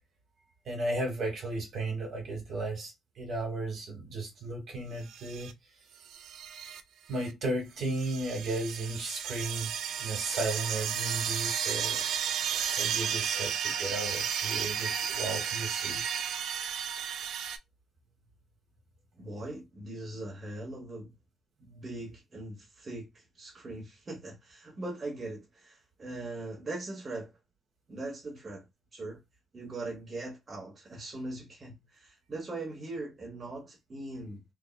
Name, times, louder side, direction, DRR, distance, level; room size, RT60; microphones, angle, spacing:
voice 1, 0.6-5.5 7.1-9.7 10.0-12.0 12.8-16.0, right 2 dB, 60° right, 1.3 m, -34 dB
sound 1, 5.1-5.5 6.1-6.8 7.2-7.3 7.8-17.6, right 8 dB, 75° right, 0.4 m, -33 dB
voice 2, 19.2-21.1 21.6-27.3 27.9-28.7 28.9-29.2 29.5-34.4, right 2 dB, 35° right, 1.0 m, -40 dB
3.4 x 2.1 x 2.3 m
cardioid pair, 90°, 0 cm